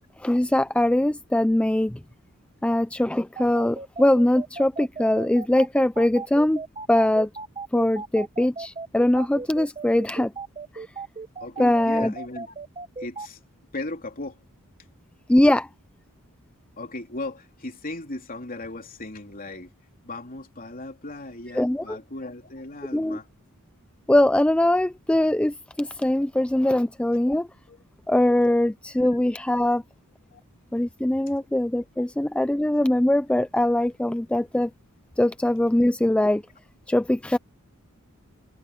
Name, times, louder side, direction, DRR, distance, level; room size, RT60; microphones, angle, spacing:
voice 1, 0.2-2.0 2.6-6.6 6.9-7.3 7.7-10.3 10.7-10.9 11.6-12.1 15.3-15.7 21.5-22.0 22.9-23.2 24.1-27.5 28.1-29.8 30.7-34.7 35.2-36.4 36.9-37.4, left 1 dB, 5° left, 0.3 m, -22 dB
sound 1, 3.3-13.3, right 4 dB, 25° right, 1.0 m, -36 dB
voice 2, 11.4-12.5 13.0-13.4 13.7-14.4 16.8-19.7 20.0-23.3 27.7-27.8 30.3-30.4 31.3-31.4, left 2 dB, 40° left, 3.4 m, -37 dB
head